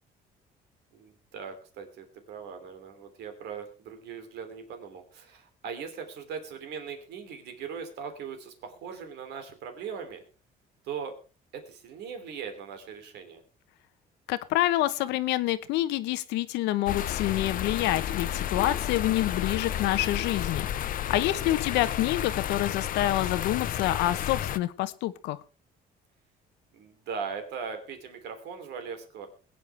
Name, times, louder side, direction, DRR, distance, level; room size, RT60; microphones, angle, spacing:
voice 1, 0.9-10.2 10.8-11.1 11.5-13.4 21.2-21.5 26.7-29.3, right 6 dB, 80° right, 6 dB, 3.0 m, -40 dB
voice 2, 14.3-25.4, left 15 dB, 90° left, 14 dB, 0.9 m, -27 dB
sound 1, 16.9-24.6, left 11 dB, 55° left, 0.8 m, -32 dB
22.0 x 9.4 x 3.4 m, 0.34 s
cardioid pair, 110°, 17 cm